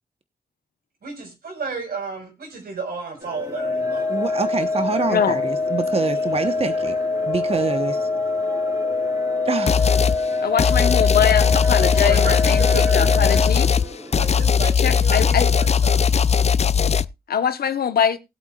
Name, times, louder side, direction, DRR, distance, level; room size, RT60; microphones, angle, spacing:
voice 1, 1.0-4.1 11.7-13.3 14.1-16.0, right 4 dB, 75° right, 5.0 m, -32 dB
sound 1, 3.2-14.4, left 2 dB, 25° right, 4.4 m, -36 dB
sound 2, 3.5-13.5, left 3 dB, 25° left, 1.7 m, -24 dB
voice 2, 4.1-7.0 7.2-8.1 9.4-10.0, right 4 dB, 40° right, 1.1 m, -26 dB
voice 3, 5.1-5.4 10.4-13.7 14.8-15.5 17.3-18.2, left 8 dB, 85° left, 1.1 m, -23 dB
sound 3, 9.7-10.2 10.6-17.1, left 7 dB, 45° left, 0.5 m, -18 dB
19.5 x 8.2 x 2.4 m
cardioid pair, 70°, 16 cm